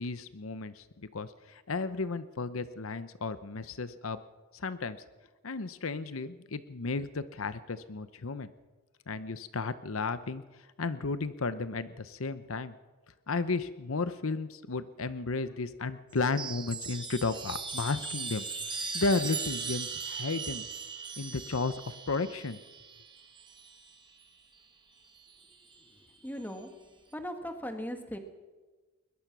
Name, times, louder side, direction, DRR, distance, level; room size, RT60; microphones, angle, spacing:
voice 1, 0.0-4.2 4.5-5.0 5.4-8.5 9.1-10.4 10.8-12.7 13.3-18.4 18.7-20.7 21.2-22.6, left 3 dB, 75° left, 13 dB, 0.8 m, -33 dB
Chime, 16.1-24.0 25.2-25.8, right 5 dB, 20° right, 1.8 m, -39 dB
voice 2, 26.2-26.8 27.1-28.2, equal, 10° left, 6 dB, 1.9 m, -38 dB
21.5 x 21.0 x 6.1 m, 1.3 s
head